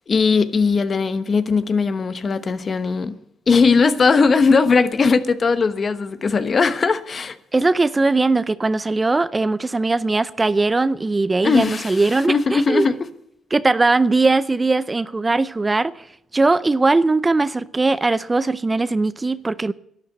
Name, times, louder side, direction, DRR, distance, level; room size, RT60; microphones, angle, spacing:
voice 1, 0.1-3.2 3.5-7.4 11.4-13.0, left 4 dB, 40° left, 1.1 m, -19 dB
voice 2, 7.5-12.9 13.5-15.9 16.3-19.7, right 3 dB, 20° right, 0.5 m, -19 dB
12.0 x 10.5 x 8.0 m
cardioid pair, 90°, 0 cm